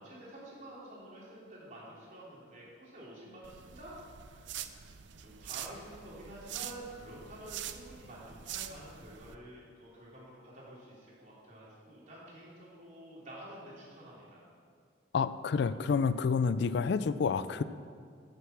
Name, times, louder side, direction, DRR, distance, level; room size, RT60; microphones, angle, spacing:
voice 1, 0.0-4.0 4.2-4.9 5.2-14.4, right 1 dB, 40° right, -6 dB, 3.2 m, -49 dB
sound 1, 3.4-9.4, right 10 dB, 70° right, 0.5 m, -45 dB
voice 2, 15.1-17.6, left 5 dB, 60° left, 14 dB, 0.3 m, -29 dB
9.4 x 6.7 x 7.1 m, 2.1 s
head